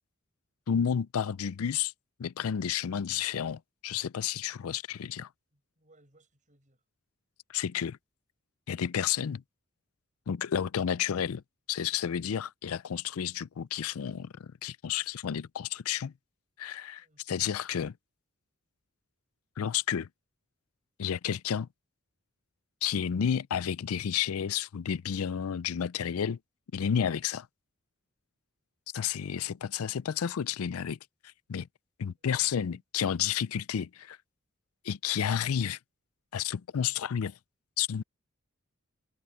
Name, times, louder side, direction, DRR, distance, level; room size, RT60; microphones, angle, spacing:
voice 1, 0.7-1.9 2.2-5.3 7.5-8.0 8.7-9.4 10.3-11.4 11.7-16.1 16.6-17.9 19.6-20.1 21.0-21.7 22.8-26.4 26.7-27.5 28.9-31.0 31.5-31.7 32.0-34.2 34.8-35.8 36.3-37.3 37.8-38.0, left 8 dB, 80° left, 0.4 m, -31 dB
voice 2, 5.5-6.8 17.0-17.6 32.2-32.8, right 2 dB, 35° right, 6.9 m, -66 dB
head